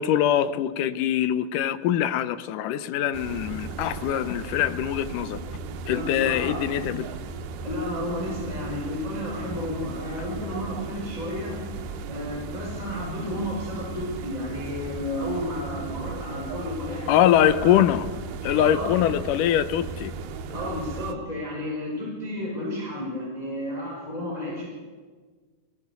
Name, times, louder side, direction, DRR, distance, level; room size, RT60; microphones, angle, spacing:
voice 1, 0.0-5.4 5.9-7.1 17.1-18.1 18.4-20.1, left 11 dB, 90° left, 2.4 m, -23 dB
sound 1, 3.1-21.1, right 4 dB, 90° right, 2.6 m, -36 dB
voice 2, 5.8-6.7 7.6-11.6 12.1-17.8 18.5-19.0 20.5-24.7, left 1 dB, 10° left, 5.3 m, -32 dB
22.0 x 19.0 x 6.9 m
omnidirectional pair, 3.6 m